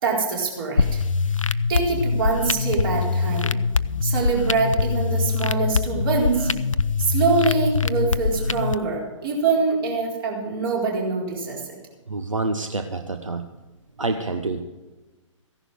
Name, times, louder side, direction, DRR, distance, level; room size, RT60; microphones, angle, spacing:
voice 1, 0.0-1.0 1.7-3.5 4.0-6.5 7.0-11.7, right 4 dB, 45° right, -1 dB, 4.2 m, -24 dB
sound 1, 0.8-8.8, left 4 dB, 80° left, 0.5 m, -23 dB
voice 2, 12.1-13.5 14.0-14.6, right 3 dB, 80° right, 7 dB, 1.0 m, -27 dB
15.5 x 11.0 x 5.0 m, 1.2 s
figure-of-eight pair, 125°, 17 cm